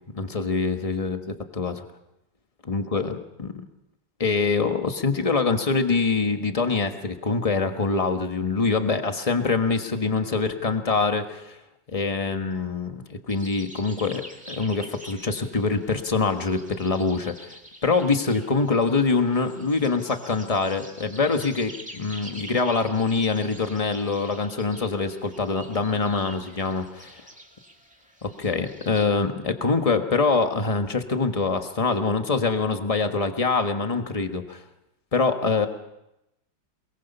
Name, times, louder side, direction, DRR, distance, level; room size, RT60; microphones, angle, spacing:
voice 1, 0.1-1.2 1.5-1.8 2.7-3.5 4.2-11.6 11.9-17.5 17.8-27.2 28.2-34.6 35.1-35.7, left 4 dB, 20° left, 6 dB, 1.3 m, -24 dB
sound 1, 13.3-29.1, right 1 dB, 5° right, 2.0 m, -46 dB
22.5 x 22.5 x 5.6 m, 0.87 s
omnidirectional pair, 2.0 m